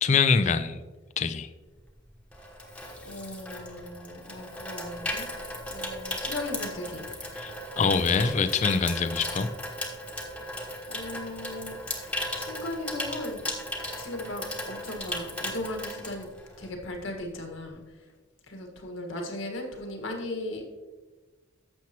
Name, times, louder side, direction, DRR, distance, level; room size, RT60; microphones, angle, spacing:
voice 1, 0.0-0.8 1.2-1.5 7.4-7.5 7.8-9.5, left 5 dB, 35° left, 12 dB, 0.4 m, -24 dB
Water tap faucet / Sink (filling or washing), 1.8-16.8 17.1-17.4, left 1 dB, 5° left, 1.1 m, -36 dB
voice 2, 3.0-5.3 5.6-7.1 10.9-13.4 14.0-16.3 16.6-18.0 18.5-20.6, left 1 dB, 80° left, 2 dB, 1.7 m, -37 dB
11.5 x 7.3 x 3.0 m, 1.2 s
head